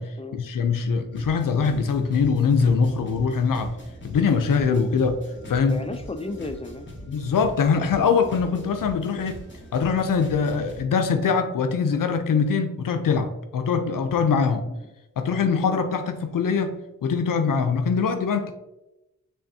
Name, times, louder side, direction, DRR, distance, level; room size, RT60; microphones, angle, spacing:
voice 1, 0.0-3.8 4.0-5.2 5.5-5.8 7.1-9.4 9.7-14.7 15.2-18.5, left 5 dB, 75° left, 7 dB, 0.5 m, -23 dB
sound 1, 1.1-10.8, equal, 35° left, 1.3 m, -42 dB
voice 2, 5.4-6.9 14.7-14.9 15.4-15.8, left 2 dB, 20° left, 8 dB, 0.4 m, -35 dB
5.6 x 3.5 x 2.7 m, 0.97 s
wide cardioid pair, 80°, 34 cm